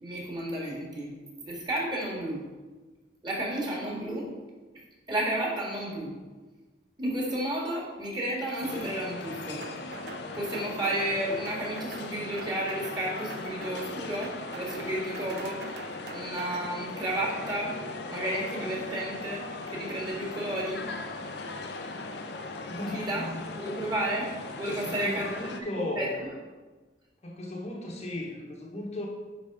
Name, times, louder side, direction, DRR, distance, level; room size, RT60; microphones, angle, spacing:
voice 1, 0.0-1.1 1.4-2.5 3.2-4.3 4.7-6.2 7.0-9.7 10.3-17.8 18.1-20.9 22.8-23.2 23.6-26.1, right 1 dB, 25° right, -3 dB, 1.9 m, -32 dB
sound 1, 8.6-25.6, left 3 dB, 70° left, 0.7 m, -39 dB
sound 2, 9.6-10.2 10.5-11.2 11.5-12.1 12.4-13.0 13.3-13.9 14.2-14.9 15.1-16.7, right 4 dB, 65° right, 0.6 m, -44 dB
voice 2, 22.7-23.6 24.8-26.2 27.2-29.1, left 1 dB, 40° left, -1 dB, 1.1 m, -36 dB
10.0 x 3.8 x 4.8 m, 1.3 s
head